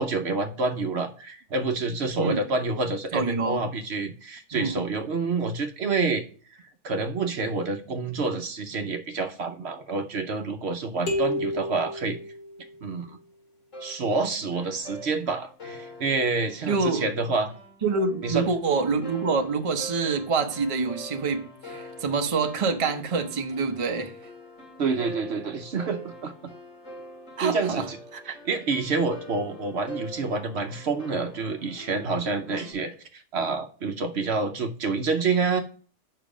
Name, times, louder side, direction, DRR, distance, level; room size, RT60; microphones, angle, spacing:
voice 1, 0.0-6.3 6.6-12.2 12.8-13.2 13.8-17.5 18.2-18.5 24.8-26.3 27.4-28.0 28.3-35.6, right 4 dB, 60° right, 1.0 m, -28 dB
voice 2, 3.1-3.6 4.5-4.8 16.7-17.1 17.8-24.1 27.4-28.3, right 4 dB, 30° right, 0.8 m, -26 dB
sound 1, 11.1-13.0, left 1 dB, 55° left, 2.3 m, -31 dB
sound 2, 13.7-32.7, equal, 80° left, 3.5 m, -44 dB
7.3 x 5.6 x 4.9 m
omnidirectional pair, 1.3 m